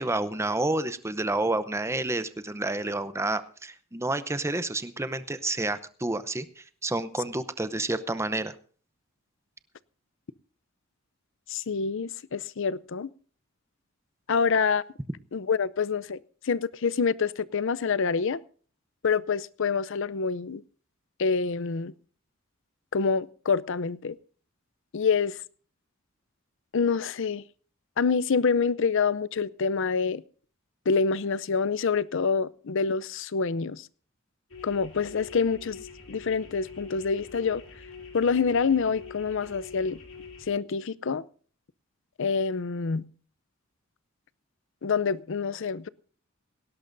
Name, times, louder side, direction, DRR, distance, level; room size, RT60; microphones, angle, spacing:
voice 1, 0.0-8.6, right 2 dB, 15° right, 0.7 m, -29 dB
voice 2, 11.5-13.1 14.3-14.8 15.3-16.2 16.4-18.4 19.0-20.6 21.2-21.9 22.9-24.2 24.9-25.4 26.7-27.4 28.0-30.2 30.9-33.9 34.6-37.6 38.1-40.0 40.5-41.2 42.2-43.0 44.8-45.9, left 5 dB, 65° left, 0.6 m, -26 dB
sound 1, 34.5-40.4, left 4 dB, 85° left, 3.5 m, -46 dB
18.5 x 17.0 x 2.6 m
head